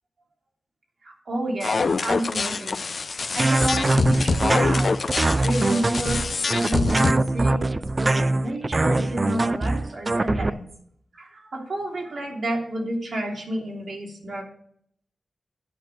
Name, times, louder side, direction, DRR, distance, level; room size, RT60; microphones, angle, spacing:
voice 1, 1.0-2.8 3.3-4.9 5.4-7.6 8.0-10.7 11.1-14.4, right 1 dB, 65° right, -2 dB, 3.0 m, -30 dB
sound 1, 1.6-7.1, left 4 dB, 55° left, 0.5 m, -25 dB
sound 2, 3.4-10.5, right 2 dB, 30° right, 0.4 m, -22 dB
9.2 x 6.2 x 7.7 m, 0.68 s
wide cardioid pair, 100°, 0 cm